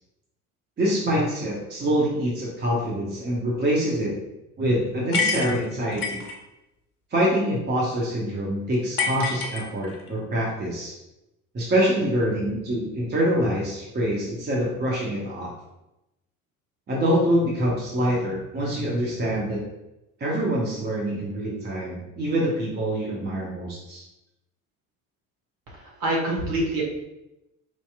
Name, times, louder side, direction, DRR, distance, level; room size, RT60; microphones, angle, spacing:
voice 1, 0.8-4.1 4.6-6.2 7.1-10.9 11.5-15.5 16.9-19.6 20.2-24.0, equal, 25° right, -4 dB, 0.9 m, -25 dB
sound 1, 5.1-6.4 9.0-10.1, left 5 dB, 90° left, 0.6 m, -27 dB
voice 2, 25.7-26.8, right 1 dB, 50° right, -3 dB, 1.4 m, -26 dB
4.4 x 2.8 x 2.3 m, 0.92 s
figure-of-eight pair, 55°, 43 cm